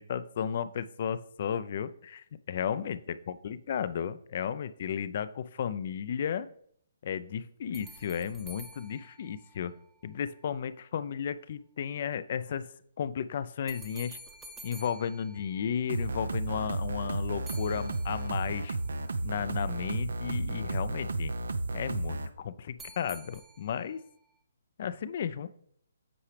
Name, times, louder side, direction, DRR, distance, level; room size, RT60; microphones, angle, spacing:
voice 1, 0.0-6.5 7.0-9.7 10.0-12.7 13.0-14.2 14.6-18.8 19.2-21.4 21.7-24.0 24.8-25.5, left 8 dB, 50° left, 14 dB, 0.4 m, -34 dB
sound 1, 7.7-10.1 13.7-16.2 17.5-18.6 22.8-24.0, right 2 dB, 10° right, 0.7 m, -50 dB
sound 2, 15.9-22.3, right 2 dB, 75° right, 0.6 m, -33 dB
8.5 x 4.8 x 3.3 m, 0.64 s
figure-of-eight pair, 140°, 0 cm